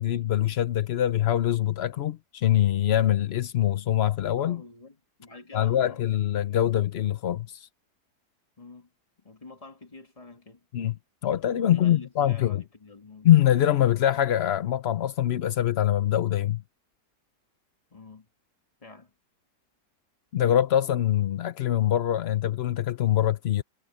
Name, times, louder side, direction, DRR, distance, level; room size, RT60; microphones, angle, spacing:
voice 1, 0.0-4.6 5.5-7.7 10.7-10.9 11.2-12.6 13.2-16.6 20.3-23.6, left 11 dB, 70° left, 0.5 m, -24 dB
voice 2, 4.4-6.1 8.6-8.9 9.2-10.7 11.6-13.4 17.9-18.3 18.8-19.1, left 3 dB, 20° left, 1.9 m, -47 dB
omnidirectional pair, 1.9 m